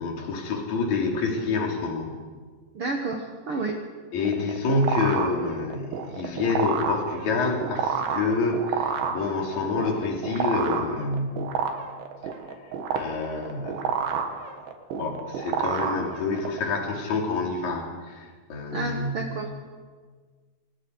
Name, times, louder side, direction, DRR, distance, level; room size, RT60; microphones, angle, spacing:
voice 1, 0.0-2.2 4.1-11.5 13.0-14.0 14.9-19.3, left 3 dB, 45° left, 0 dB, 4.4 m, -27 dB
voice 2, 2.7-3.8 18.7-19.5, right 3 dB, 55° right, 2 dB, 1.6 m, -30 dB
sound 1, 4.2-16.6, right 5 dB, 85° right, 4.0 m, -30 dB
27.0 x 26.5 x 4.9 m, 1.5 s
omnidirectional pair, 4.9 m